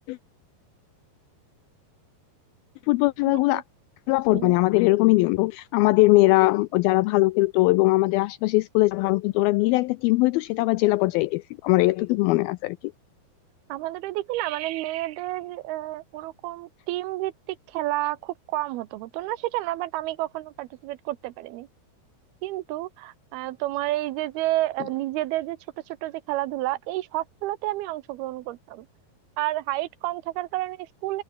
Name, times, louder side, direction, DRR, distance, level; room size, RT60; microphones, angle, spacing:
voice 1, 2.9-3.6 4.1-12.8, left 21 dB, 85° left, 2.1 m, -21 dB
voice 2, 13.7-17.3 17.7-21.7 22.4-25.6 25.9-28.9 29.4-31.2, right 16 dB, 75° right, 2.6 m, -30 dB
omnidirectional pair, 4.7 m